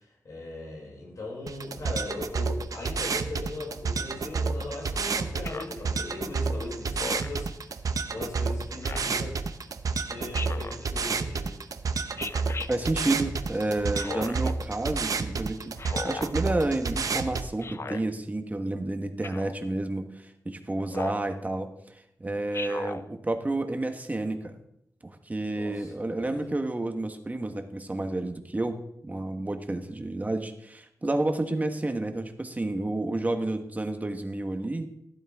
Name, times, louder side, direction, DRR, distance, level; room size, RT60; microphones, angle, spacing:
voice 1, 0.0-7.7 8.1-9.3 10.0-11.5 25.4-26.4, left 2 dB, 70° left, -3 dB, 6.4 m, -39 dB
sound 1, 1.5-17.5, right 4 dB, 70° right, 0.8 m, -30 dB
Speech synthesizer, 5.4-5.8 7.0-7.4 8.8-9.2 10.3-10.8 12.2-12.7 13.9-14.5 15.8-16.3 17.6-18.0 19.2-19.6 20.9-21.3 22.5-23.0, left 4 dB, 45° left, 0.7 m, -36 dB
voice 2, 12.7-21.7 22.2-24.6 25.0-34.9, right 2 dB, 25° right, 6 dB, 1.4 m, -30 dB
15.0 x 12.0 x 3.6 m, 0.77 s
wide cardioid pair, 85°, 6 cm